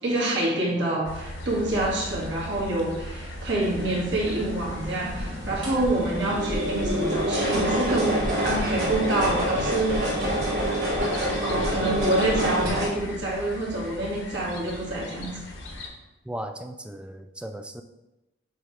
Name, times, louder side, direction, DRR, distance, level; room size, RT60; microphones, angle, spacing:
voice 1, 0.0-10.1 11.4-15.3, right 1 dB, 60° right, -5 dB, 2.0 m, -27 dB
sound 1, 1.0-15.9, left 1 dB, 70° left, 1.1 m, -39 dB
sound 2, 3.6-12.9, equal, 80° right, 2.0 m, -27 dB
voice 2, 16.3-17.8, right 1 dB, 5° right, 7 dB, 0.4 m, -36 dB
8.1 x 3.2 x 4.9 m, 0.99 s
head